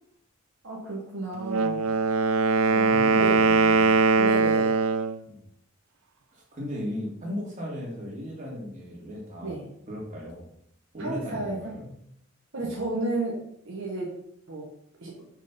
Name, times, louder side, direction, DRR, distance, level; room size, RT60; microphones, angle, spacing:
voice 1, 0.6-1.8 3.1-3.4 4.2-4.8 9.4-9.7 11.0-11.7 12.5-14.1 14.5-14.7 15.0-15.1, right 2 dB, 65° right, -3 dB, 1.5 m, -32 dB
Wind instrument woodwind instrument, 1.4-5.2, right 4 dB, 85° right, 0.5 m, -21 dB
voice 2, 2.6-4.0 5.2-5.4 6.3-9.5 9.9-10.5 10.9-11.9 12.6-12.8, left 1 dB, 35° right, -3 dB, 2.6 m, -36 dB
6.1 x 4.4 x 5.7 m, 0.70 s
head